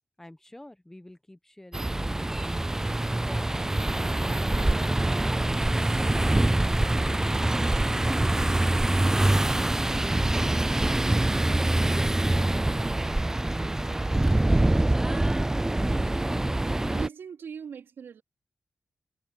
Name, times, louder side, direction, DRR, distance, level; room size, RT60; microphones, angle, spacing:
voice 1, 0.2-2.7 3.2-3.7, left 1 dB, 10° left, 1.1 m, -49 dB
sound 1, 1.7-17.1, right 1 dB, 15° right, 0.3 m, -25 dB
voice 2, 16.9-18.2, right 7 dB, 90° right, 4.0 m, -40 dB
wide cardioid pair, 90°, 4 cm